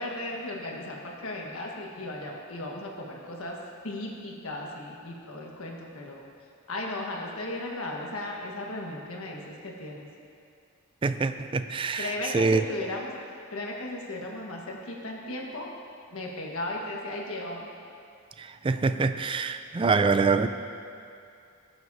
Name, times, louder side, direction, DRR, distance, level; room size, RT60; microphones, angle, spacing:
voice 1, 0.0-6.2 6.7-10.1 12.0-13.1 13.5-15.7 16.1-17.7, left 1 dB, 75° left, -1 dB, 1.4 m, -36 dB
voice 2, 11.0-12.6 18.6-20.5, right 4 dB, 25° right, 10 dB, 0.3 m, -25 dB
16.5 x 7.8 x 2.7 m, 2.5 s
head